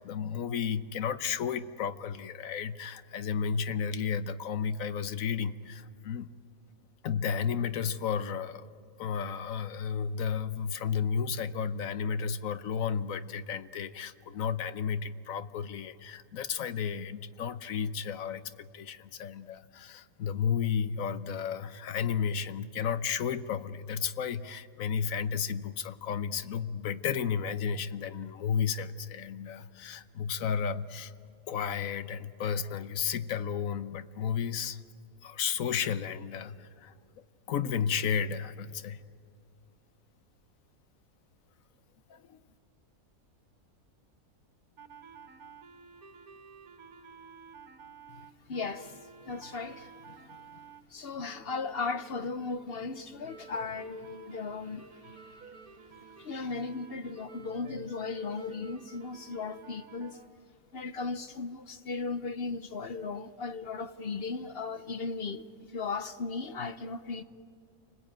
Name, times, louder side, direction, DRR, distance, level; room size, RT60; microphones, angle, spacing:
voice 1, 0.0-6.3 7.0-8.7 9.0-31.1 31.5-34.8 35.2-36.9 37.5-39.0 42.1-42.4, left 7 dB, 70° left, 1.2 m, -33 dB
sound 1, 44.8-50.8 51.3-60.3, right 6 dB, 80° right, 1.8 m, -52 dB
voice 2, 48.5-50.4 50.9-55.6 56.2-60.2 60.7-67.2, left 4 dB, 50° left, 0.9 m, -37 dB
29.0 x 20.5 x 9.0 m
omnidirectional pair, 1.5 m